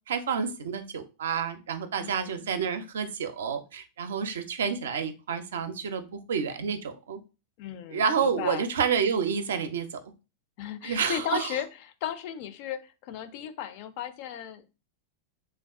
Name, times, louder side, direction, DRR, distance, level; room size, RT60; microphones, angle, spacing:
voice 1, 0.1-7.2 7.9-10.0 10.8-11.5, right 6 dB, 65° right, 0.4 m, -29 dB
voice 2, 2.0-2.5 7.6-8.7 10.6-14.7, left 10 dB, 45° left, 0.4 m, -36 dB
3.3 x 2.2 x 2.3 m
figure-of-eight pair, 90°, 0 cm